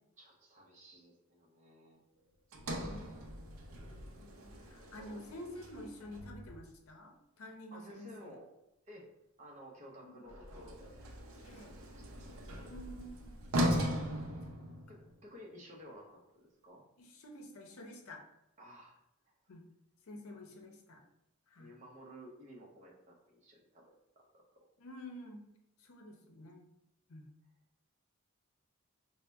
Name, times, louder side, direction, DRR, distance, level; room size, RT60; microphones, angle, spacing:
voice 1, 0.2-2.0 4.6-5.2 7.7-8.5 8.8-9.1 9.4-12.1 14.9-16.8 18.6-19.0 20.3-20.4 21.6-24.6, equal, 30° right, -2 dB, 0.7 m, -55 dB
Sliding door, 2.5-6.8 10.3-15.2, equal, 70° right, 0.5 m, -39 dB
voice 2, 2.6-3.3 3.9-8.4 10.0-10.3 11.4-11.7 12.7-13.4 17.0-18.2 19.5-19.7 20.0-21.0 21.5-21.7 24.8-25.4 25.8-26.7 27.1-27.3, left 1 dB, 75° left, 2 dB, 0.6 m, -50 dB
4.0 x 2.1 x 3.3 m, 0.85 s
head